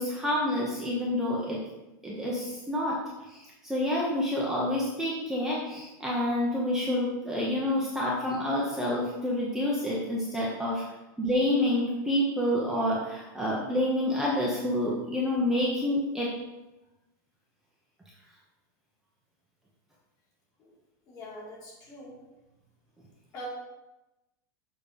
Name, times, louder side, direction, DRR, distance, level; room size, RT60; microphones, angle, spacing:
voice 1, 0.0-1.6 2.0-3.0 3.3-10.8 11.2-16.3, left 1 dB, 5° right, -6 dB, 0.9 m, -28 dB
voice 2, 21.1-22.2 23.3-23.5, left 1 dB, 35° left, -4 dB, 2.3 m, -43 dB
6.7 x 3.8 x 5.2 m, 1.0 s
supercardioid pair, 155°, 11 cm